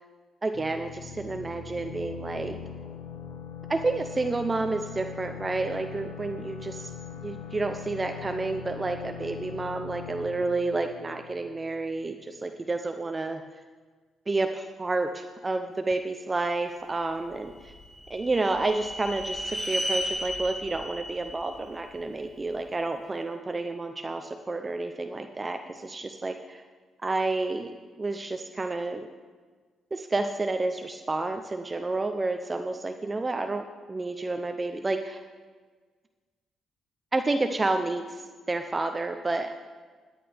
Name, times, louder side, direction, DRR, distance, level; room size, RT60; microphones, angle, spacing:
voice 1, 0.4-2.6 3.7-6.9 7.2-13.4 14.3-17.5 18.1-26.6 27.0-29.0 29.9-35.2 37.1-38.2 38.5-39.6, right 3 dB, 25° right, 6 dB, 0.6 m, -30 dB
sound 1, 0.5-12.0, left 7 dB, 85° left, 1.2 m, -41 dB
sound 2, 17.3-22.5, equal, 10° left, 1.8 m, -35 dB
15.0 x 10.0 x 3.5 m, 1.4 s
cardioid pair, 90°, 0 cm